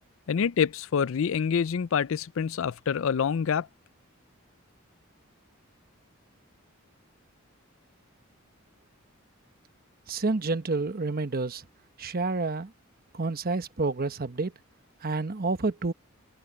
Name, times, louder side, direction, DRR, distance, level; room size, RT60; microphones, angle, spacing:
voice 1, 0.3-3.7, left 7 dB, 70° left, 0.4 m, -26 dB
voice 2, 10.1-11.6 12.0-12.7 13.1-14.5 15.0-15.9, right 3 dB, 45° right, 1.0 m, -29 dB
open air
head